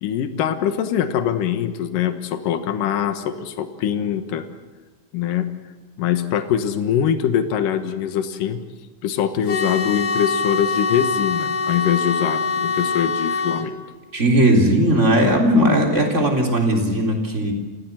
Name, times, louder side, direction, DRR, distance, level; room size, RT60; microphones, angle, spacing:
voice 1, 0.0-4.4 5.1-5.5 6.0-8.6 9.0-13.8, left 9 dB, 75° left, 8 dB, 2.9 m, -23 dB
sound 1, 9.5-13.7, left 4 dB, 55° left, 3.0 m, -24 dB
voice 2, 14.1-17.5, right 1 dB, 20° right, 1 dB, 3.6 m, -17 dB
29.0 x 16.5 x 7.6 m, 1.3 s
omnidirectional pair, 4.0 m